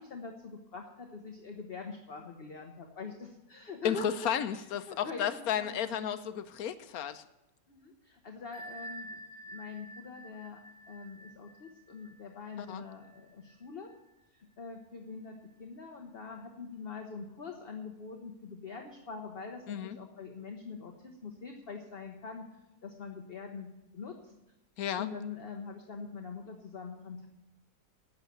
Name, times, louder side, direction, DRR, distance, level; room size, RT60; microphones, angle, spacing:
voice 1, 0.0-6.0 7.7-10.6 10.9-13.9 14.3-22.5 22.8-23.7 23.9-24.3 25.0-27.3, left 4 dB, 45° left, 3 dB, 1.2 m, -44 dB
voice 2, 3.8-7.2 12.6-12.8 19.7-20.0 24.8-25.1, left 9 dB, 85° left, 11 dB, 1.2 m, -33 dB
Bell, 8.5-14.0, right 1 dB, 10° left, 2.3 m, -49 dB
11.0 x 8.0 x 8.7 m, 0.95 s
omnidirectional pair, 1.5 m